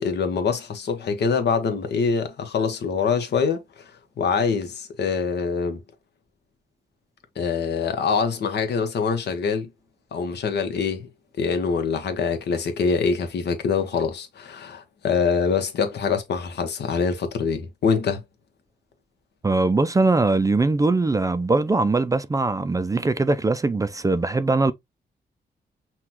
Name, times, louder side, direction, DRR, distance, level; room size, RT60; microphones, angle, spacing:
voice 1, 0.0-3.6 4.2-5.8 7.4-9.7 10.1-11.1 11.4-18.2, left 5 dB, 75° left, 1.0 m, -24 dB
voice 2, 19.4-24.7, right 3 dB, 20° right, 0.4 m, -21 dB
5.8 x 2.3 x 2.9 m
cardioid pair, 85°, 18 cm